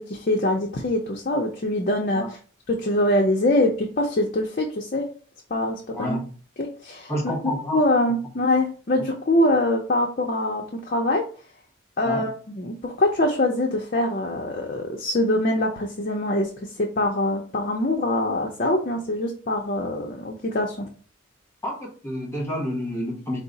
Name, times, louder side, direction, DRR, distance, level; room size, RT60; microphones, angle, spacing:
voice 1, 0.0-2.4 2.7-5.1 5.5-6.2 6.6-7.3 7.7-11.2 12.0-20.9, left 1 dB, 45° left, 0 dB, 0.5 m, -24 dB
voice 2, 5.9-6.3 7.1-7.8 12.0-12.3 21.6-23.4, left 1 dB, 15° left, 0 dB, 1.1 m, -29 dB
4.7 x 2.0 x 3.9 m, 0.40 s
head